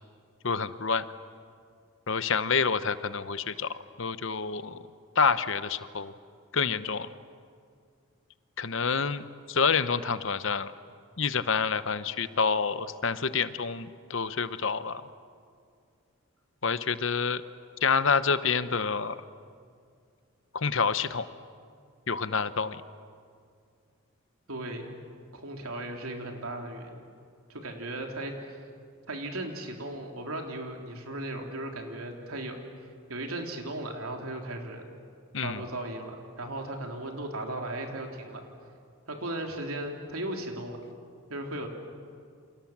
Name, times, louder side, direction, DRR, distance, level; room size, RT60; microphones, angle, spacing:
voice 1, 0.4-1.0 2.1-4.8 5.2-6.1 6.5-7.1 8.6-10.7 11.2-15.0 16.6-17.4 17.8-19.2 20.5-21.3 22.1-22.8 35.3-35.6, left 5 dB, 60° left, 13 dB, 0.9 m, -28 dB
voice 2, 24.5-24.9 25.3-27.1 27.5-28.6 29.1-32.6 33.1-34.8 35.4-38.4 39.1-40.8 41.3-41.7, right 1 dB, 85° right, 2 dB, 3.6 m, -36 dB
28.5 x 27.5 x 7.4 m, 2.2 s
head